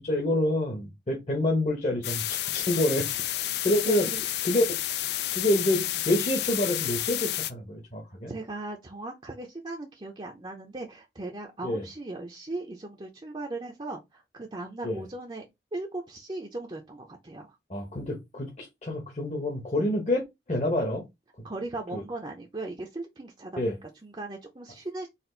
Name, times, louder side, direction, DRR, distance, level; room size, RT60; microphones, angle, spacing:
voice 1, 0.0-3.1 3.6-4.1 4.4-4.6 5.3-8.3 11.6-11.8 14.8-15.0 17.7-20.2 20.5-21.0 21.9-22.0 23.6-23.7, left 1 dB, 40° left, 1.1 m, -27 dB
sound 1, 2.0-7.5, left 13 dB, 70° left, 0.4 m, -30 dB
voice 2, 3.9-4.3 8.3-15.5 15.7-17.6 21.4-25.1, right 2 dB, 25° right, 0.6 m, -38 dB
4.3 x 2.5 x 3.8 m
head